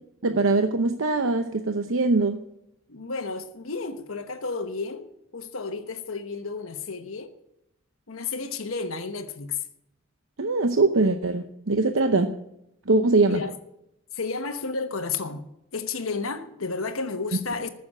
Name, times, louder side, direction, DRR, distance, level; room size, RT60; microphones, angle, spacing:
voice 1, 0.2-2.4 10.4-12.3 12.9-13.4, right 3 dB, 70° right, 0.8 m, -22 dB
voice 2, 2.9-7.3 8.1-9.6 13.3-13.5 14.1-17.7, left 4 dB, 80° left, 1.2 m, -32 dB
14.5 x 7.0 x 8.7 m
head